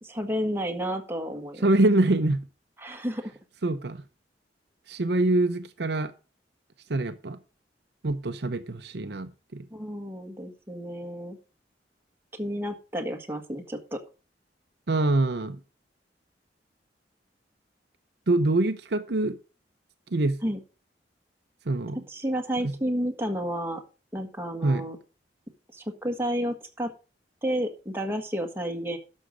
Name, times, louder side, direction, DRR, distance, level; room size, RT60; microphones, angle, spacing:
voice 1, 0.0-1.7 2.8-3.3 9.7-11.4 12.4-14.0 20.4-20.6 22.1-23.8 24.1-25.0 25.7-26.9 27.4-29.0, equal, 15° right, 1.6 m, -31 dB
voice 2, 1.6-2.4 3.6-4.0 4.9-6.1 6.9-7.4 8.0-9.6 14.9-15.6 18.3-19.4 20.1-20.4 21.7-22.0 22.6-22.7 24.6-24.8, right 2 dB, 65° right, 0.7 m, -24 dB
11.5 x 6.5 x 5.1 m
head